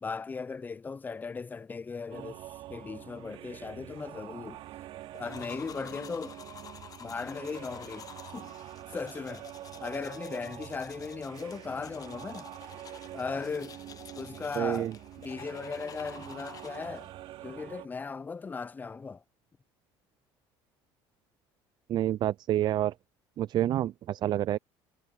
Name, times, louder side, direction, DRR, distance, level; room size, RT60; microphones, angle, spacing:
voice 1, 0.0-2.4 2.7-4.6 5.2-6.4 7.0-8.1 8.3-8.5 8.9-9.5 9.8-12.5 13.1-13.8 14.2-14.9 15.2-17.1 17.4-19.2, left 4 dB, 15° left, 0.4 m, -37 dB
sound 1, 2.1-17.9, right 14 dB, 65° right, 3.5 m, -46 dB
sound 2, 5.1-17.1, left 8 dB, 35° left, 1.0 m, -50 dB
voice 2, 14.6-14.9 21.9-22.9 23.4-24.6, right 12 dB, 45° right, 0.3 m, -28 dB
cardioid pair, 120°, 10 cm